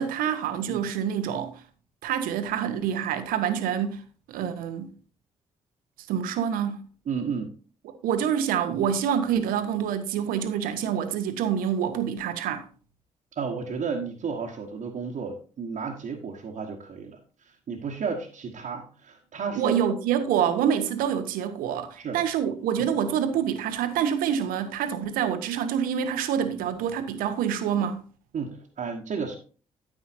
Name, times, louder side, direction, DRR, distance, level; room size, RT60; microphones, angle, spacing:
voice 1, 0.0-1.5 2.0-4.0 4.3-4.9 6.1-6.8 8.0-12.6 19.5-28.1, right 8 dB, 70° right, 0.9 m, -26 dB
voice 2, 7.0-7.5 13.3-19.9 21.9-22.2 22.8-22.9 28.3-29.4, right 5 dB, 55° right, 1.3 m, -33 dB
9.7 x 9.2 x 2.7 m
hypercardioid pair, 40°, 15 cm